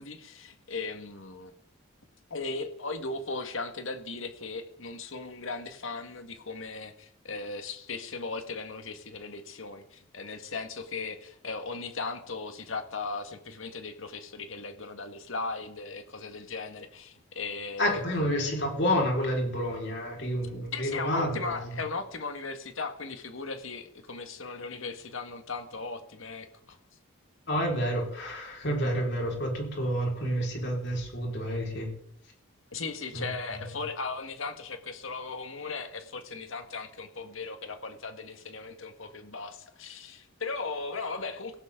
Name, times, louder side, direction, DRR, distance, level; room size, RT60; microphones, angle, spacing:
voice 1, 0.0-1.5 2.3-18.0 20.7-26.8 32.7-41.6, left 4 dB, 70° left, 7 dB, 1.8 m, -37 dB
voice 2, 17.8-21.6 27.5-31.9 33.1-33.3, equal, 55° left, -1 dB, 5.0 m, -29 dB
17.0 x 16.0 x 3.9 m, 0.68 s
head